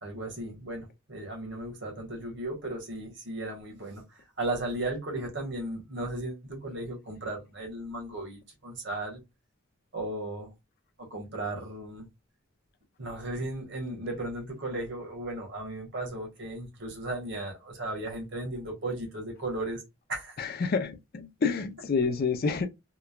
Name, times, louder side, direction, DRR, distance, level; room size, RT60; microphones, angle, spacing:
voice 1, 0.0-4.0 4.4-9.2 9.9-10.5 11.0-12.1 13.0-19.8 20.1-20.4, right 2 dB, 60° right, 1.1 m, -35 dB
voice 2, 20.4-22.7, left 4 dB, 45° left, 0.4 m, -28 dB
3.0 x 2.1 x 2.2 m
head